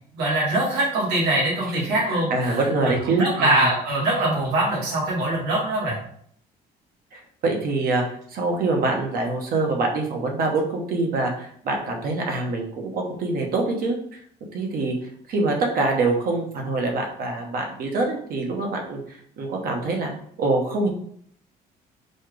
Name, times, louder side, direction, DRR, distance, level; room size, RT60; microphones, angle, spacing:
voice 1, 0.1-6.0, right 1 dB, 90° right, -3 dB, 1.5 m, -23 dB
voice 2, 2.1-3.7 7.1-14.2 14.5-14.9 15.3-19.0 19.4-20.1 20.4-20.9, right 3 dB, 60° right, 1 dB, 1.0 m, -25 dB
4.2 x 2.4 x 3.2 m, 0.63 s
cardioid pair, 110°, 17 cm